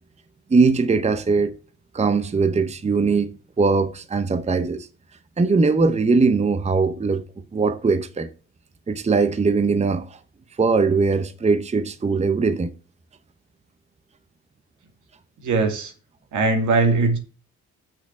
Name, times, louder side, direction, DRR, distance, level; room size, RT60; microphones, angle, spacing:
voice 1, 0.5-1.5 1.9-3.3 3.6-4.9 5.4-7.2 7.5-8.3 8.9-10.2 10.6-12.7, right 4 dB, 20° right, 0.8 m, -20 dB
voice 2, 15.4-15.9 16.3-17.2, right 3 dB, 75° right, 2.5 m, -20 dB
6.3 x 5.8 x 7.1 m
cardioid pair, 90°, 30 cm